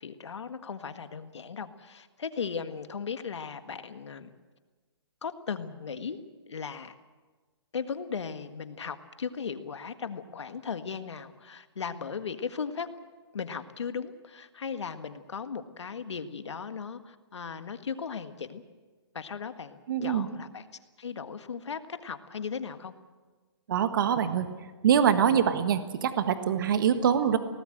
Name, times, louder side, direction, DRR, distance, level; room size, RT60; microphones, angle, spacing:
voice 1, 0.0-4.3 5.2-6.2 6.5-6.9 7.7-12.9 13.3-18.6 19.1-20.6 21.0-22.9 25.3-25.4, left 6 dB, 85° left, 9 dB, 1.7 m, -37 dB
voice 2, 19.9-20.3 23.7-24.5 24.8-27.4, right 8 dB, 50° right, 10 dB, 1.5 m, -24 dB
22.0 x 18.5 x 7.8 m, 1.3 s
hypercardioid pair, 160°, 14 cm